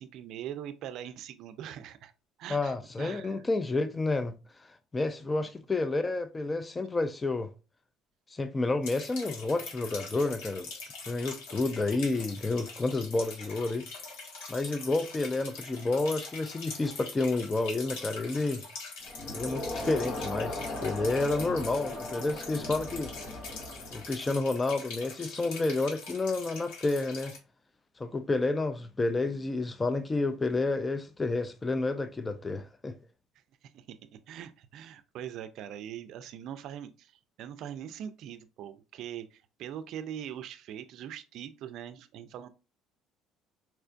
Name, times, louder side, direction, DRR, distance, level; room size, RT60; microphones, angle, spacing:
voice 1, 0.0-2.1 2.4-3.4 5.2-5.5 33.7-34.0 34.3-42.5, right 10 dB, 65° right, 0.4 m, -42 dB
voice 2, 2.5-4.3 4.6-7.5 8.3-10.7 11.1-13.9 14.5-18.6 19.3-23.1 23.9-27.4 28.0-32.9, left 3 dB, 20° left, 0.3 m, -30 dB
sound 1, 8.8-27.4, left 4 dB, 85° left, 1.1 m, -43 dB
Crowd, 19.0-24.2, left 1 dB, 50° left, 0.8 m, -38 dB
4.3 x 2.2 x 2.5 m
cardioid pair, 120°, 0 cm